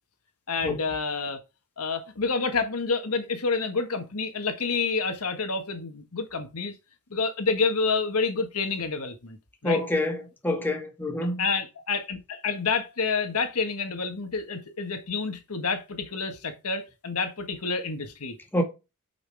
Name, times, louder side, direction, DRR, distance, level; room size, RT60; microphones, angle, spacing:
voice 1, 0.5-1.4 1.8-6.7 7.1-9.4 9.6-9.8 11.4-18.3, left 4 dB, 80° left, 1.5 m, -28 dB
voice 2, 9.6-11.4 18.5-18.6, left 1 dB, 10° left, 2.1 m, -27 dB
8.9 x 5.9 x 3.5 m
head